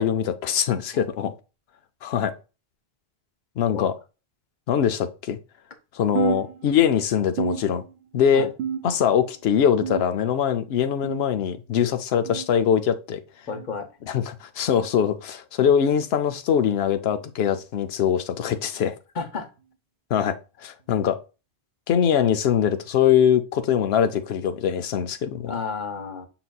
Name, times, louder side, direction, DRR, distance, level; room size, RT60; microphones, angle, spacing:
voice 1, 0.0-1.3 2.0-2.3 3.6-3.9 4.7-5.4 5.9-7.8 8.1-8.5 8.8-13.2 14.1-19.0 20.1-21.2 21.9-25.5, left 8 dB, 85° left, 0.8 m, -22 dB
sound 1, 6.2-7.0 7.4-8.2 8.6-9.2 9.8-10.4 11.0-11.4 12.3-12.5 13.5-13.7 14.7-14.9 15.9-16.1 17.1-17.3 18.4-18.5 19.6-19.7 20.8-20.9, right 8 dB, 85° right, 0.9 m, -31 dB
voice 2, 13.5-13.9 19.1-19.5 25.4-26.3, left 5 dB, 50° left, 0.9 m, -31 dB
5.9 x 3.9 x 2.3 m
omnidirectional pair, 1.0 m